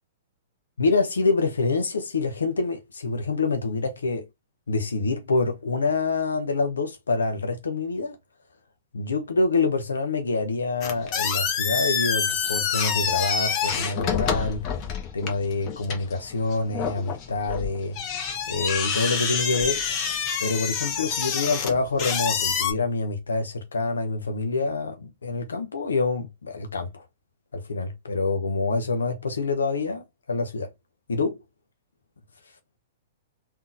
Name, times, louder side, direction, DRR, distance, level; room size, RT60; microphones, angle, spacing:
voice 1, 0.8-4.2 4.7-8.2 8.9-14.6 15.1-18.0 18.5-20.1 20.4-27.0 27.5-30.7 31.1-31.4, left 3 dB, 85° left, 0.6 m, -26 dB
sound 1, 10.8-22.7, left 7 dB, 40° left, 1.0 m, -27 dB
3.7 x 2.7 x 2.5 m
hypercardioid pair, 120°, 0 cm